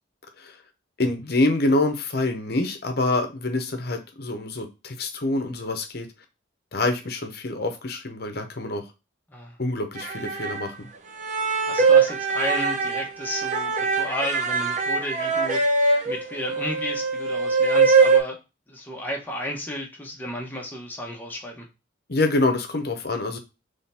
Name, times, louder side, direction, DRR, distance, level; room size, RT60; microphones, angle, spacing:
voice 1, 1.0-6.1 6.7-8.8 9.6-10.9 22.1-23.4, left 2 dB, 55° left, 6 dB, 0.8 m, -26 dB
sound 1, 10.0-10.6 11.2-18.2, right 4 dB, 40° right, 0.7 m, -22 dB
voice 2, 11.7-15.8 16.0-18.4 18.7-21.7, left 1 dB, 10° left, 0 dB, 1.0 m, -33 dB
3.8 x 3.3 x 4.2 m, 0.27 s
head